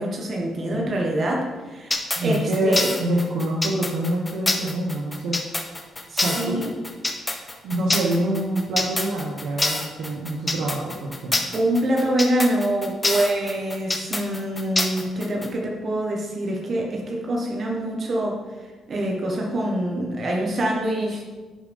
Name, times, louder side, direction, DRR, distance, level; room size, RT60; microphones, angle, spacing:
voice 1, 0.0-2.0 2.2-2.9 6.1-6.7 11.5-18.4 18.9-21.2, right 1 dB, 50° right, 0 dB, 1.3 m, -25 dB
sound 1, 1.9-15.5, left 2 dB, 20° left, 0.9 m, -26 dB
voice 2, 2.2-5.4 6.2-6.6 7.6-11.5, right 1 dB, 75° right, -2 dB, 1.0 m, -26 dB
10.5 x 5.1 x 3.6 m, 1.3 s
cardioid pair, 90°, 0 cm